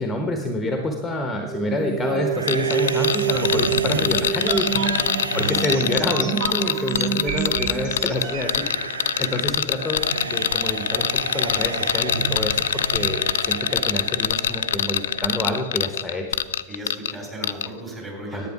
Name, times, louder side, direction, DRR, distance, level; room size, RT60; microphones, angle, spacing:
voice 1, 0.0-10.0 10.3-16.4 18.3-18.5, left 1 dB, 10° left, 4 dB, 1.0 m, -27 dB
sound 1, 1.5-8.6, right 7 dB, 40° right, 0.8 m, -27 dB
sound 2, 2.3-15.3, right 4 dB, 75° right, 0.6 m, -32 dB
sound 3, 2.5-17.1 17.4-17.7, left 10 dB, 60° left, 0.3 m, -24 dB
voice 2, 9.2-9.5 16.7-18.5, right 1 dB, 20° right, -1 dB, 3.8 m, -36 dB
10.5 x 9.0 x 4.9 m, 1.4 s
figure-of-eight pair, 90°, 0 cm